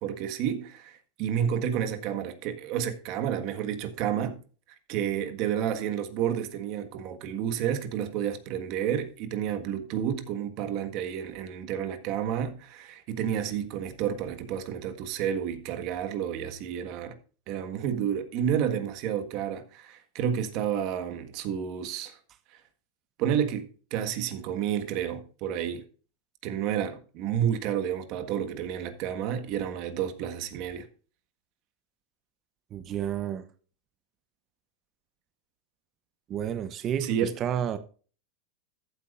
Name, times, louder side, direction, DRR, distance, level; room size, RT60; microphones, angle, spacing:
voice 1, 0.0-4.4 4.9-17.1 17.5-22.2 23.2-23.6 23.9-25.8 26.4-30.9 37.0-37.3, right 9 dB, 45° right, 1.6 m, -30 dB
voice 2, 32.7-33.5 36.3-37.8, right 9 dB, 30° right, 0.8 m, -31 dB
14.5 x 8.3 x 2.5 m
supercardioid pair, 150°, 0 cm